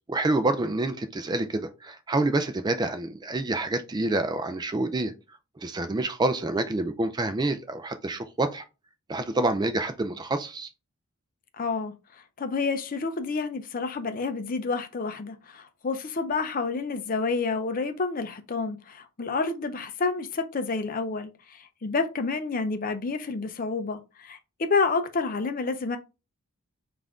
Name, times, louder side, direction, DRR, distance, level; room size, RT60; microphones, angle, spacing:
voice 1, 0.1-5.1 5.6-8.6 9.1-10.7, right 2 dB, 20° right, 0.3 m, -27 dB
voice 2, 11.6-11.9 12.4-26.0, left 4 dB, 40° left, 0.5 m, -29 dB
5.5 x 2.5 x 3.5 m
head